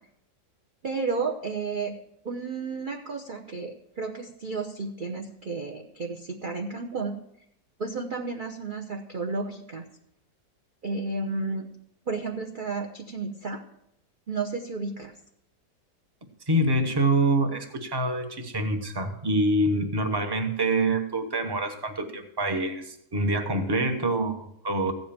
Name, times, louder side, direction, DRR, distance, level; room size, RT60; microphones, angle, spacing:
voice 1, 0.8-1.9 2.2-7.1 7.8-9.8 10.8-11.7 12.1-13.6 14.3-15.1, right 4 dB, 40° right, 2 dB, 0.9 m, -32 dB
voice 2, 16.5-24.9, right 1 dB, 15° right, 6 dB, 1.0 m, -26 dB
15.5 x 5.2 x 8.7 m, 0.77 s
omnidirectional pair, 1.8 m